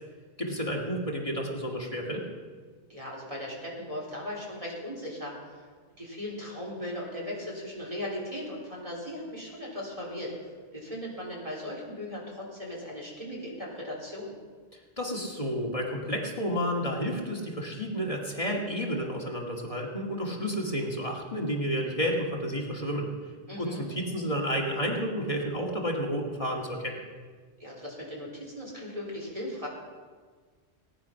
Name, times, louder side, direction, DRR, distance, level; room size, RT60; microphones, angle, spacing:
voice 1, 0.4-2.3 15.0-23.1 23.6-27.0, equal, 30° left, -1 dB, 2.4 m, -31 dB
voice 2, 2.9-5.7 6.0-14.3 23.5-23.8 27.6-29.7, left 1 dB, 30° right, -4 dB, 3.8 m, -38 dB
19.0 x 9.9 x 5.8 m, 1.5 s
omnidirectional pair, 1.2 m